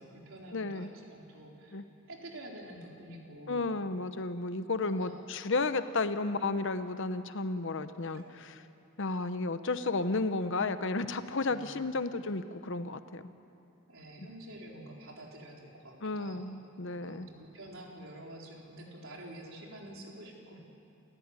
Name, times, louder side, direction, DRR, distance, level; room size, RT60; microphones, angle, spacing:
voice 1, 0.0-3.7 4.5-5.2 8.1-8.4 11.4-11.8 13.9-16.4 16.8-20.6, right 1 dB, 65° right, -1 dB, 4.3 m, -48 dB
voice 2, 0.5-0.9 1.7-1.8 3.5-8.6 9.0-13.2 16.0-17.3, left 3 dB, 55° left, 11 dB, 0.9 m, -33 dB
28.5 x 15.0 x 9.7 m, 2.7 s
head